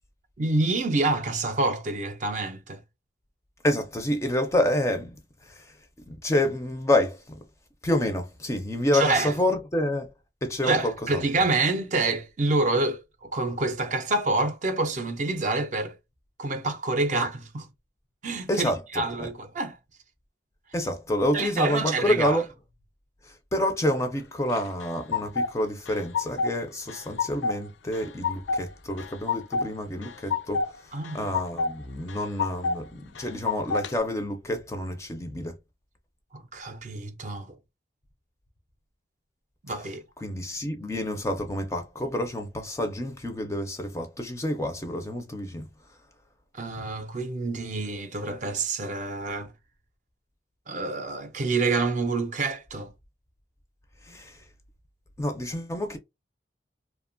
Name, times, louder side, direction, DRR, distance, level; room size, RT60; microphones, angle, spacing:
voice 1, 0.4-2.8 8.9-9.3 10.6-15.9 16.4-17.7 18.2-19.8 21.3-22.4 30.9-31.3 36.3-37.6 39.6-40.0 46.5-49.5 50.7-52.9, right 3 dB, 40° right, 0.4 m, -27 dB
voice 2, 3.6-5.2 5.5-5.7 6.1-7.4 7.8-10.1 10.4-11.2 18.5-19.3 20.7-22.5 23.2-30.7 31.1-35.6 40.2-45.7 54.1-54.4 55.2-56.0, left 1 dB, 15° left, 0.4 m, -28 dB
sound 1, 24.5-25.5 25.9-26.6 26.9-27.6 27.9-28.6 29.0-29.7 30.0-30.7 31.0-31.7 32.1-32.8 33.2-33.9, left 4 dB, 85° left, 0.3 m, -28 dB
2.8 x 2.2 x 2.5 m
head